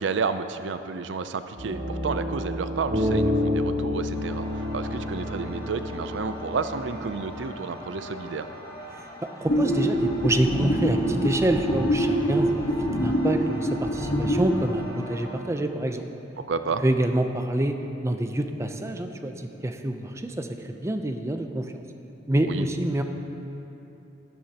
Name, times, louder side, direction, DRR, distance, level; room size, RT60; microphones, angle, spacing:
voice 1, 0.0-8.5 16.5-16.8 22.4-22.7, right 5 dB, 75° right, 10 dB, 0.4 m, -31 dB
sound 1, 1.6-7.3, left 1 dB, 50° right, 1.7 m, -29 dB
sound 2, 4.1-15.3, equal, 20° left, 2.1 m, -42 dB
voice 2, 8.9-16.0 16.8-21.7 22.3-23.0, right 1 dB, 15° right, 6 dB, 0.5 m, -27 dB
sound 3, 9.5-14.5, equal, 70° left, 1.3 m, -24 dB
12.5 x 10.5 x 2.9 m, 2.9 s
head